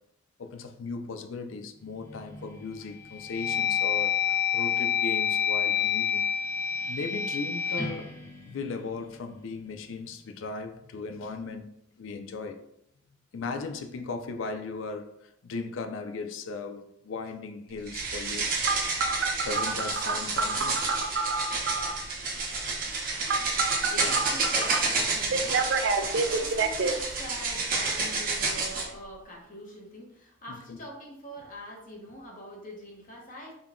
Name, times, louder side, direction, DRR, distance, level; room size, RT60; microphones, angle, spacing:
voice 1, 0.4-6.3 6.9-8.1 8.5-11.7 12.0-12.7 13.3-18.5 19.4-20.8 30.5-30.8, left 4 dB, 80° left, 0.4 m, -37 dB
sound 1, 2.1-2.5 3.0-9.2, left 8 dB, 15° left, 0.5 m, -28 dB
sound 2, 17.9-28.9, right 3 dB, 45° right, 0.8 m, -30 dB
Telephone, 18.6-22.0 23.3-24.8 25.3-26.9, right 4 dB, 60° right, 0.4 m, -28 dB
voice 2, 23.8-33.5, equal, 40° left, 1.0 m, -44 dB
3.8 x 2.3 x 3.6 m
head